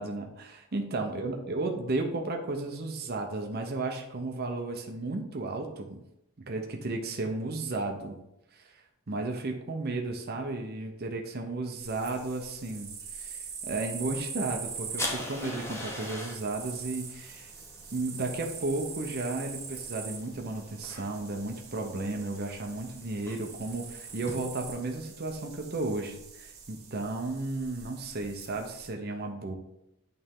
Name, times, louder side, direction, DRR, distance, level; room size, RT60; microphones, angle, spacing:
voice 1, 0.0-6.0 6.4-8.2 8.5-8.7 9.1-17.5 17.9-29.5, right 2 dB, 45° right, 3 dB, 0.7 m, -34 dB
sound 1, 11.8-28.9, right 6 dB, 85° right, 1.7 m, -44 dB
sound 2, 14.6-24.3, left 1 dB, 10° left, 1.0 m, -43 dB
8.8 x 3.3 x 3.7 m, 0.84 s
head